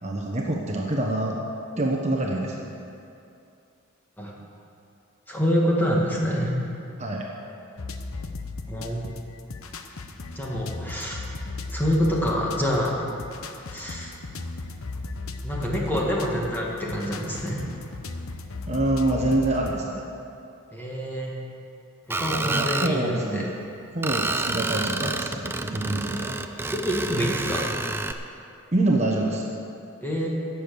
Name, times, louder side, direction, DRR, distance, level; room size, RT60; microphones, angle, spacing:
voice 1, 0.0-1.4 1.8-2.7 7.0-7.3 18.7-20.0 22.4-23.5 23.9-26.7 28.7-29.4, right 2 dB, 30° right, -1 dB, 1.1 m, -26 dB
voice 2, 5.3-6.6 8.7-9.1 10.4-11.2 11.7-13.1 13.7-14.1 15.4-17.6 20.7-21.4 22.1-23.5 26.7-27.7 30.0-30.3, equal, 10° left, -3 dB, 1.9 m, -26 dB
sound 1, 7.8-19.8, left 3 dB, 75° left, 0.8 m, -36 dB
Screech, 22.1-22.9 24.0-28.1, right 2 dB, 10° right, 0.4 m, -29 dB
17.0 x 7.2 x 6.9 m, 2.7 s
head